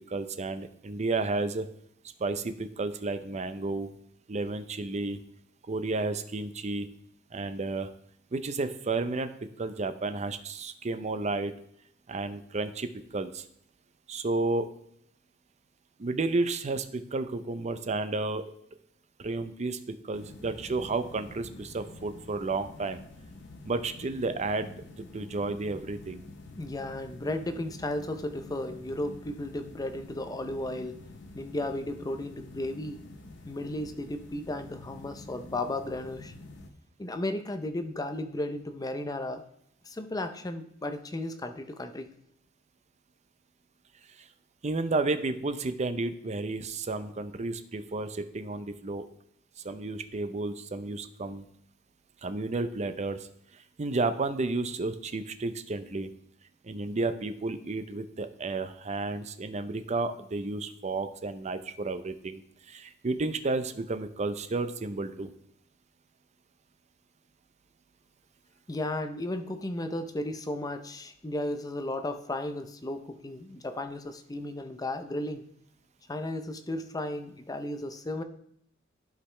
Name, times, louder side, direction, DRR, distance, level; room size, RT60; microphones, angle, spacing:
voice 1, 0.1-1.7 2.2-3.9 4.3-5.2 5.7-6.9 7.3-7.9 8.3-9.3 9.6-11.5 12.1-13.4 14.1-14.7 16.0-18.4 19.2-23.0 23.6-24.7 25.0-26.2 44.2-44.3 44.6-49.0 49.6-51.4 52.2-53.3 53.5-56.1 56.6-62.4 62.7-65.3, right 3 dB, 35° right, 10 dB, 0.5 m, -32 dB
sound 1, 20.1-36.7, left 2 dB, 65° left, 0.8 m, -48 dB
voice 2, 26.6-31.0 31.3-33.0 33.4-36.3 37.0-39.4 39.8-42.1 68.7-75.4 76.1-78.2, left 1 dB, 20° left, 8 dB, 0.5 m, -34 dB
11.5 x 5.0 x 3.3 m, 0.70 s
head